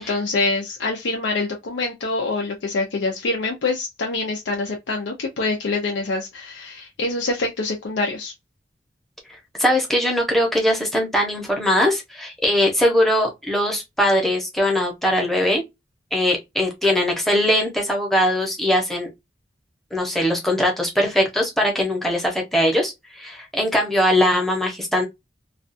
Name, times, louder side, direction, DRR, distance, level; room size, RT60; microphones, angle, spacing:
voice 1, 0.0-8.3, left 3 dB, 85° left, 0.5 m, -25 dB
voice 2, 9.3-15.6 16.1-19.1 19.9-25.0, left 1 dB, ahead, 0.7 m, -21 dB
2.4 x 2.2 x 2.5 m
head